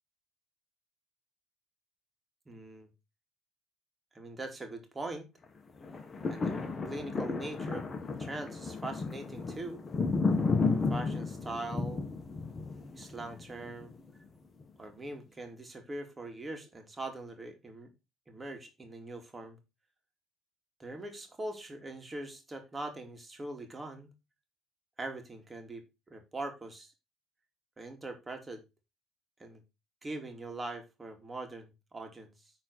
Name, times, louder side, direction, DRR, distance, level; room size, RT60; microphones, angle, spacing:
voice 1, 2.5-2.9 4.1-5.3 6.3-6.6 6.9-7.9 8.2-9.8 10.7-12.2 12.9-13.9 14.8-17.9 18.3-19.6 20.8-24.1 25.0-26.9 27.8-28.6 29.4-29.6 30.0-32.5, right 2 dB, 20° right, 4 dB, 2.6 m, -42 dB
sound 1, 5.8-14.1 14.6-14.7, left 4 dB, 30° left, 1.8 m, -33 dB
11.0 x 4.1 x 4.7 m, 0.25 s
supercardioid pair, 80°, 0 cm